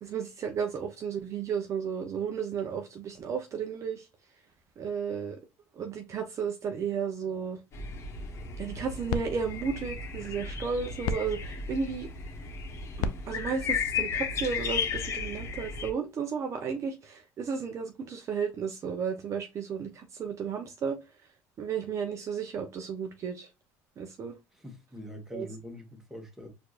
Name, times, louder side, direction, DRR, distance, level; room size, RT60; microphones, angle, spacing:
voice 1, 0.0-4.1 4.8-5.4 5.8-7.6 8.6-12.1 13.0-21.0 21.6-23.5 24.0-24.3 25.3-25.5, right 6 dB, 45° right, 0.7 m, -33 dB
sound 1, 7.7-15.9, left 5 dB, 45° left, 1.1 m, -35 dB
sound 2, 8.5-14.9, left 5 dB, 65° left, 0.4 m, -39 dB
voice 2, 24.5-26.5, left 1 dB, 5° right, 1.5 m, -44 dB
4.4 x 2.7 x 2.4 m
supercardioid pair, 90°, 7 cm